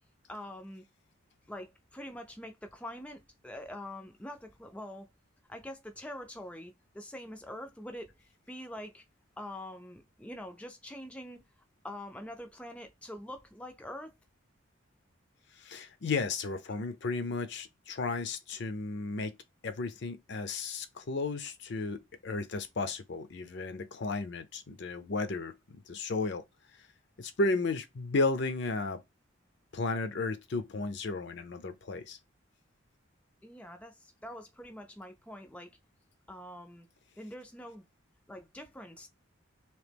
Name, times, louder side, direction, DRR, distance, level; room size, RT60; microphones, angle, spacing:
voice 1, 0.3-0.8 1.5-5.1 5.5-9.0 9.4-11.4 11.8-14.1 33.4-35.7 36.3-36.9 37.2-37.9 38.3-39.1, left 1 dB, 5° left, 0.3 m, -44 dB
voice 2, 15.6-19.3 19.6-26.4 27.2-29.0 29.7-32.2, left 3 dB, 55° left, 0.5 m, -34 dB
3.0 x 2.8 x 3.4 m
head